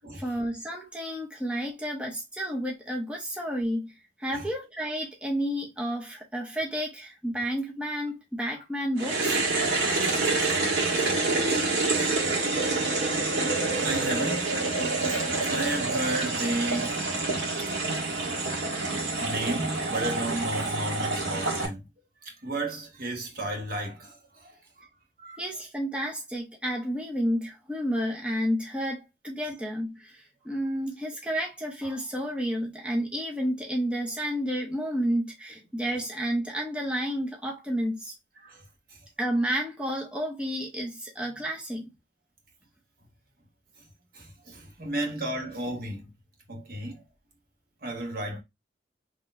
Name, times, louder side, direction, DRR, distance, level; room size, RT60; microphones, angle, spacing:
voice 1, 0.0-3.9 4.2-9.4 25.4-38.1 39.2-41.9, equal, 5° right, 0.7 m, -31 dB
sound 1, 9.0-21.7, right 3 dB, 70° right, 1.4 m, -27 dB
voice 2, 9.9-11.2 11.5-11.7 12.0-12.2 13.8-17.0 18.3-18.5 19.2-21.8 22.2-24.9 25.2-25.4 38.4-38.6 38.9-39.0 44.1-46.1 46.5-47.0 47.8-48.4, right 1 dB, 55° right, 1.3 m, -34 dB
4.0 x 3.0 x 2.5 m
head